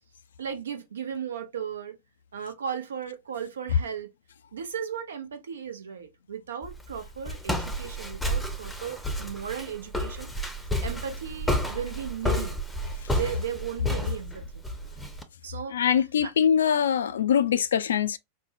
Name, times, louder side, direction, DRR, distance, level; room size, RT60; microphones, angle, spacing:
voice 1, 0.4-2.0 2.3-4.1 4.5-10.3 10.8-12.6 13.1-14.5 15.4-16.3, right 8 dB, 65° right, 0.6 m, -36 dB
Walk footsteps, 6.6-15.2, left 1 dB, 5° left, 0.7 m, -31 dB
voice 2, 15.7-18.2, left 8 dB, 65° left, 0.3 m, -23 dB
4.3 x 2.1 x 2.5 m
figure-of-eight pair, 90°, 0 cm